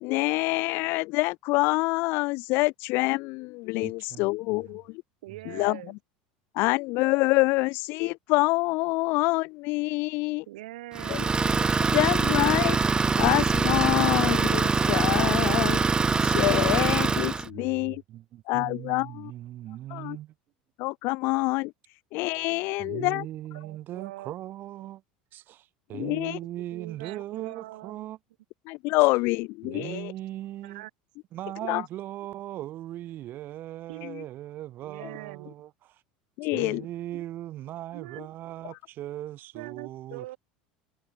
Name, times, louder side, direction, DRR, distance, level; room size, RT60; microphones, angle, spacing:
voice 1, 0.0-4.8 5.5-5.8 6.6-10.4 11.1-11.2 11.9-12.8 13.2-15.8 16.2-18.0 18.5-19.3 19.9-20.2 20.8-21.7 22.1-23.2 25.9-26.4 28.7-30.1 31.7-31.8 36.4-36.8, left 24 dB, 60° left, 0.7 m, -26 dB
voice 2, 3.8-4.6 17.4-20.3 22.8-25.0 25.3-28.2 29.6-30.9 31.3-36.0 36.5-40.3, right 14 dB, 50° right, 4.3 m, -39 dB
voice 3, 5.2-6.0 10.5-11.4 22.8-23.1 23.5-24.3 26.0-28.1 29.6-30.0 30.6-30.9 31.5-31.6 33.9-34.1 34.8-35.5 36.8-37.3 37.9-38.3 39.5-40.4, right 17 dB, 80° right, 5.5 m, -43 dB
Idling, 11.0-17.5, right 4 dB, 20° right, 0.8 m, -24 dB
hypercardioid pair, 90°, 4 cm